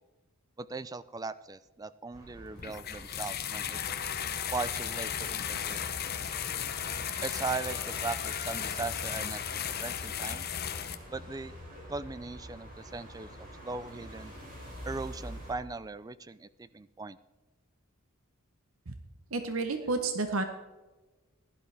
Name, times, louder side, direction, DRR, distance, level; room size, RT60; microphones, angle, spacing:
voice 1, 0.6-4.0 4.5-5.9 7.2-10.5 11.1-11.5 11.9-14.3 14.8-17.2, right 3 dB, 15° right, 16 dB, 0.3 m, -39 dB
sound 1, 2.1-15.5, equal, 40° right, 4.0 m, -48 dB
sound 2, 2.6-10.9, left 8 dB, 45° left, 0.8 m, -35 dB
Trumpet, 5.9-11.6, left 1 dB, 15° left, 1.4 m, -52 dB
voice 2, 19.3-20.4, right 3 dB, 70° right, 7 dB, 0.9 m, -30 dB
16.5 x 11.5 x 3.4 m, 1.2 s
head